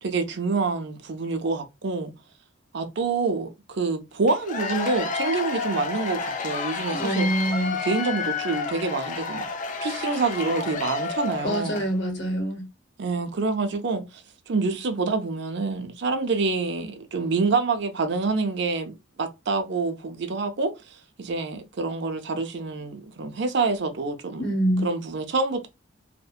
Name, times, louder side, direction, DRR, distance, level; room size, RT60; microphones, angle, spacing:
voice 1, 0.0-2.1 2.7-7.3 7.8-9.5 9.8-11.8 13.0-14.0 14.5-20.7 21.2-24.5 24.8-25.7, right 3 dB, 60° right, 0.5 m, -27 dB
Cheering / Applause / Crowd, 4.3-11.9, left 4 dB, 40° left, 0.4 m, -30 dB
voice 2, 6.9-7.8 11.4-12.7 24.4-24.9, right 1 dB, 60° left, 0.8 m, -25 dB
2.6 x 2.1 x 2.3 m
head